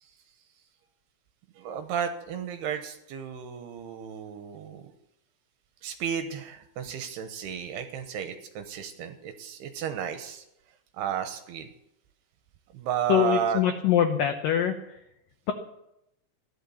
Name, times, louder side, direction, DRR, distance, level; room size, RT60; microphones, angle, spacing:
voice 1, 1.6-4.8 5.8-10.4 10.9-11.7 12.7-13.6, right 8 dB, 75° right, 8 dB, 2.6 m, -33 dB
voice 2, 13.1-15.0, left 10 dB, 85° left, 6 dB, 1.9 m, -24 dB
15.5 x 11.5 x 7.0 m, 0.83 s
omnidirectional pair, 5.4 m